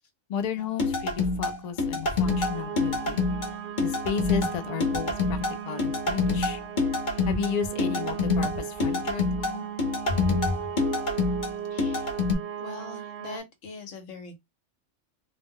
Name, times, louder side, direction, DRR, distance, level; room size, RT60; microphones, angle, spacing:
voice 1, 0.3-3.2 3.8-6.6 7.3-9.7 10.1-10.6, left 6 dB, 75° left, 0.3 m, -33 dB
sound 1, 0.8-12.4, left 3 dB, 45° left, 0.9 m, -27 dB
sound 2, 2.2-13.4, right 9 dB, 80° right, 0.9 m, -37 dB
voice 2, 11.7-12.1 12.6-14.4, left 3 dB, 90° left, 1.1 m, -42 dB
2.4 x 2.0 x 3.5 m
omnidirectional pair, 1.3 m